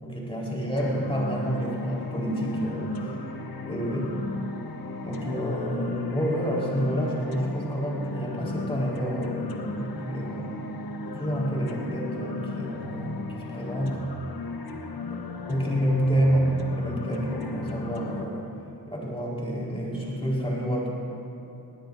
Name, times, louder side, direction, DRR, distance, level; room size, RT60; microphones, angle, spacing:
voice 1, 0.0-3.1 3.6-4.2 5.0-10.5 11.1-14.0 15.4-18.5 18.9-20.9, equal, 15° left, -4 dB, 4.3 m, -28 dB
sound 1, 0.8-18.2, left 3 dB, 75° left, 1.4 m, -35 dB
21.0 x 19.0 x 2.7 m, 2.9 s
cardioid pair, 75°, 37 cm